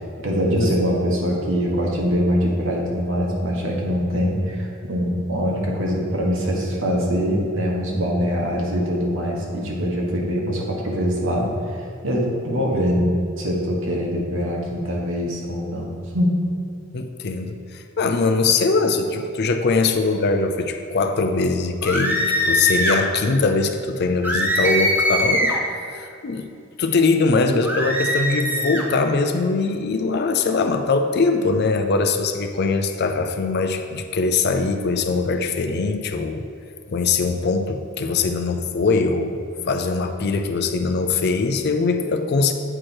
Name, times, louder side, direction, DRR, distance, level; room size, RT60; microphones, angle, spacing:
voice 1, 0.2-16.4, equal, 65° right, -2 dB, 1.4 m, -23 dB
voice 2, 16.9-25.6 25.9-26.5 26.8-36.5 36.9-39.4 39.7-42.5, left 4 dB, 50° left, 7 dB, 0.5 m, -22 dB
sound 1, 21.8-23.0 24.2-25.7 27.6-28.9, equal, 10° right, 0.7 m, -21 dB
8.8 x 4.7 x 4.4 m, 2.4 s
head